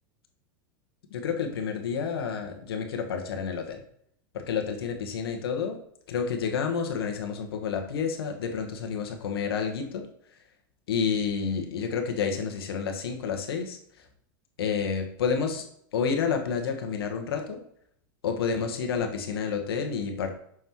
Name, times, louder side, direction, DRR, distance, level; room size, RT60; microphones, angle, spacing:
voice 1, 1.1-3.8 4.3-5.8 6.1-10.1 10.9-14.0 14.6-15.6 15.9-17.6 18.2-20.3, left 6 dB, 85° left, 4 dB, 1.3 m, -29 dB
6.2 x 5.7 x 3.1 m, 0.67 s
supercardioid pair, 125°, 12 cm